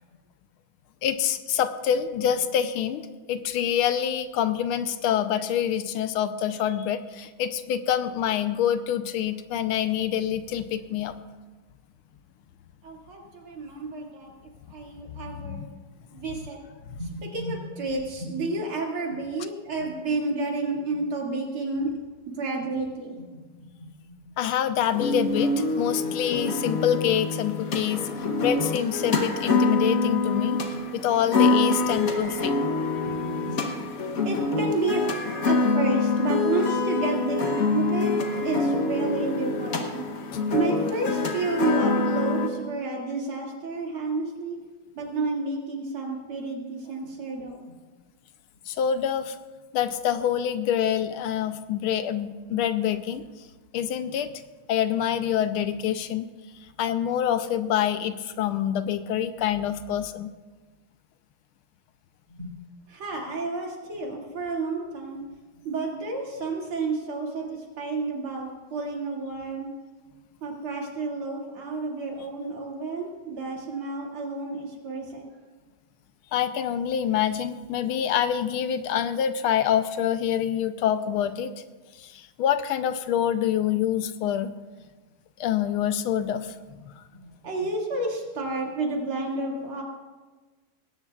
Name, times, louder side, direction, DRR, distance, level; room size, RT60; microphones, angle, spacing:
voice 1, 1.0-11.1 15.4-15.8 16.9-17.0 24.4-28.1 28.4-30.6 30.9-32.6 48.7-49.4 49.7-53.2 53.7-54.3 54.7-56.3 56.8-60.3 76.3-81.5 82.0-84.5 85.4-86.5 86.8-87.0, left 9 dB, 80° left, 11 dB, 1.5 m, -26 dB
voice 2, 12.8-14.3 14.7-15.6 16.1-16.6 17.0-21.9 22.3-23.3 23.6-24.3 26.0-26.1 33.1-33.8 34.2-35.0 35.5-40.0 40.5-44.6 44.9-47.7 62.3-62.6 62.9-65.2 65.6-69.7 70.4-75.3 87.2-89.8, right 3 dB, 75° right, -1 dB, 3.2 m, -31 dB
sound 1, 24.9-42.5, left 3 dB, 50° left, 1.2 m, -25 dB
19.5 x 17.0 x 2.4 m, 1.3 s
omnidirectional pair, 2.3 m